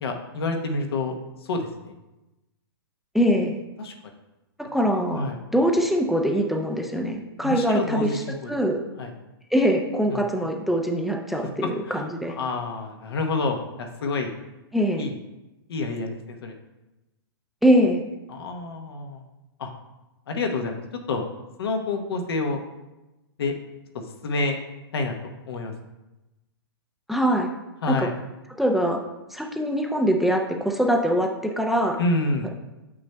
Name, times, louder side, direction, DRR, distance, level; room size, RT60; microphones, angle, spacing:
voice 1, 0.0-1.9 3.8-3.9 5.1-5.4 7.4-8.6 9.0-9.1 10.1-10.2 11.6-14.3 15.0-15.2 15.7-16.5 18.3-19.2 19.6-19.7 20.3-20.8 21.1-21.3 21.6-22.6 23.4-23.5 24.2-24.6 24.9-25.7 27.8-28.1 32.0-32.5, left 3 dB, 70° left, 3 dB, 1.0 m, -28 dB
voice 2, 3.1-3.6 4.7-5.2 5.5-8.1 8.5-8.8 9.5-12.3 14.7-15.0 17.6-18.0 27.1-27.5 27.9-28.1 28.6-29.0 29.3-32.0, equal, ahead, 1 dB, 0.5 m, -22 dB
7.6 x 6.0 x 2.2 m, 1.0 s
hypercardioid pair, 125°, 13 cm